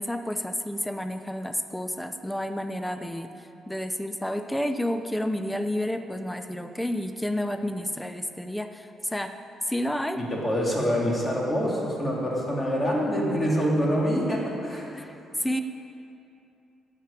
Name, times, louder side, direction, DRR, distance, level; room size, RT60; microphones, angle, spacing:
voice 1, 0.0-9.3 9.7-10.2 15.0-15.6, left 1 dB, 5° left, 8 dB, 0.6 m, -30 dB
voice 2, 10.1-15.0, equal, 20° left, -3 dB, 3.5 m, -26 dB
13.0 x 7.4 x 8.8 m, 2.7 s
cardioid pair, 90°, 0 cm